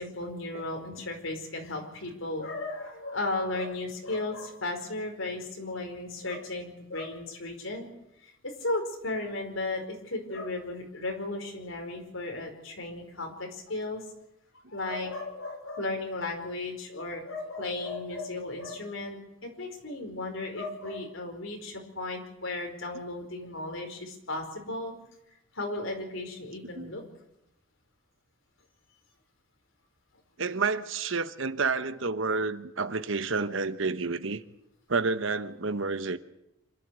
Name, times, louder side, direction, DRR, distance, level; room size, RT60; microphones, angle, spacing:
voice 1, 0.0-7.9 8.2-14.0 14.7-24.9 25.5-27.0, left 2 dB, 70° left, 4.9 m, -35 dB
voice 2, 30.4-34.4 34.9-36.2, right 4 dB, 65° right, 1.1 m, -29 dB
26.5 x 12.5 x 8.2 m
head